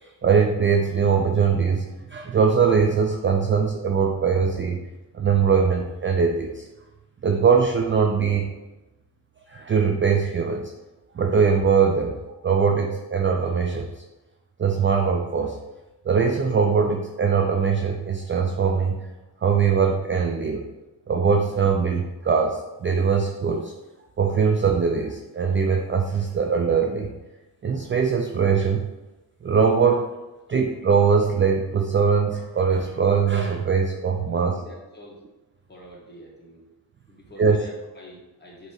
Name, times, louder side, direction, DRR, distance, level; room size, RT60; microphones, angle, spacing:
voice 1, 0.2-4.8 5.1-6.7 7.2-8.5 9.5-10.7 11.1-12.2 12.4-13.9 14.6-15.6 16.1-19.0 19.4-20.6 21.1-23.7 24.2-27.1 27.6-28.9 29.4-30.1 30.5-34.6 37.4-37.6, right 6 dB, 30° right, 2 dB, 0.3 m, -21 dB
voice 2, 34.3-35.2 35.7-36.6 37.1-38.7, equal, 25° left, -4 dB, 1.5 m, -46 dB
5.3 x 2.9 x 3.1 m, 1.0 s
cardioid pair, 75°, 43 cm